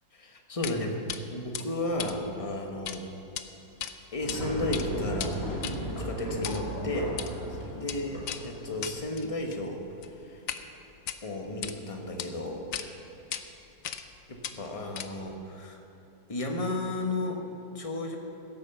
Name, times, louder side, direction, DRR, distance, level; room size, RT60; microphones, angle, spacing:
voice 1, 0.1-1.1 1.3-3.0 4.1-9.8 10.3-10.4 11.2-12.7 14.3-15.8 16.3-17.4 17.7-18.2, left 1 dB, 20° left, 2 dB, 1.1 m, -33 dB
sound 1, 0.6-0.8 1.1-1.2 1.5-3.0 3.2-3.4 3.8-4.4 4.6-10.6 11.0-11.7 12.2-12.3 12.7-12.9 13.3-13.4 13.8-14.1 14.4-15.3, left 9 dB, 65° left, 0.8 m, -38 dB
sound 2, 4.2-9.1, equal, 40° left, 3.3 m, -35 dB
16.0 x 8.2 x 6.9 m, 2.7 s
omnidirectional pair, 2.0 m